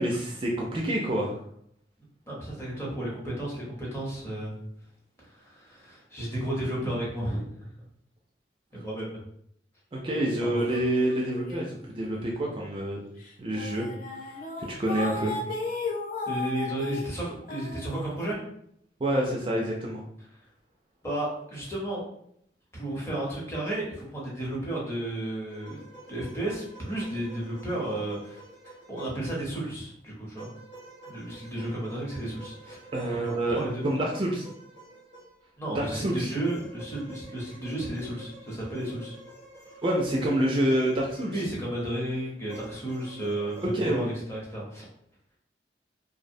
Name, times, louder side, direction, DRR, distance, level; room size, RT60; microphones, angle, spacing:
voice 1, 0.0-1.4 9.9-13.0 13.4-13.9 14.6-15.4 19.0-20.0 32.9-34.5 35.7-36.3 39.8-41.4 43.6-44.1, right 1 dB, 30° right, -2 dB, 0.3 m, -27 dB
voice 2, 2.3-4.6 5.3-7.5 8.7-9.2 10.4-10.6 16.3-18.4 21.0-22.0 22.7-25.8 26.1-28.4 28.9-30.5 31.1-32.8 33.1-33.9 35.6-39.2 39.7-39.8 41.3-43.6 43.8-44.9, right 1 dB, 15° left, -5 dB, 0.8 m, -33 dB
sound 1, 10.7-12.1 12.4-12.7 13.3-13.4 13.6-18.3, left 3 dB, 50° left, 0.5 m, -35 dB
sound 2, 25.5-29.4 30.3-35.6 36.4-41.7 42.5-43.9, right 1 dB, 75° left, 0.8 m, -49 dB
2.5 x 2.0 x 2.6 m, 0.69 s
head